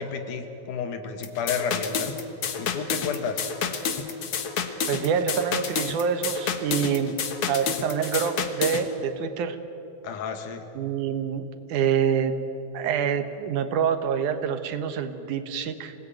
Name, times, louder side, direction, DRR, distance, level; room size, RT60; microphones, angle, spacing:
voice 1, 0.0-2.1 2.6-3.4 10.0-10.6, left 6 dB, 90° left, 7 dB, 3.1 m, -31 dB
sound 1, 1.2-8.8, left 6 dB, 55° left, 2.1 m, -29 dB
voice 2, 4.9-7.2 7.5-9.6 10.7-12.4 12.7-15.9, right 7 dB, 80° right, 9 dB, 2.7 m, -26 dB
26.5 x 18.5 x 9.1 m, 2.9 s
omnidirectional pair, 3.5 m